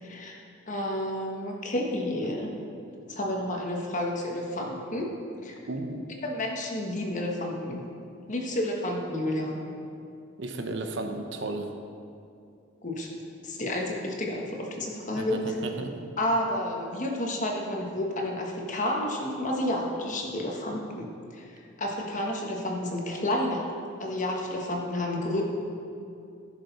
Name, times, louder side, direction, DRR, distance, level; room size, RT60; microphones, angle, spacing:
voice 1, 0.0-2.5 3.1-5.1 5.4-5.6 6.2-7.8 8.3-9.6 12.8-13.1 13.4-15.6 16.2-21.5 21.8-23.6 24.0-25.4, left 1 dB, 40° left, 0 dB, 1.4 m, -30 dB
voice 2, 5.7-6.1 10.4-11.7 15.1-16.1, right 2 dB, 60° right, 5 dB, 0.9 m, -34 dB
15.5 x 6.7 x 4.2 m, 2.6 s
head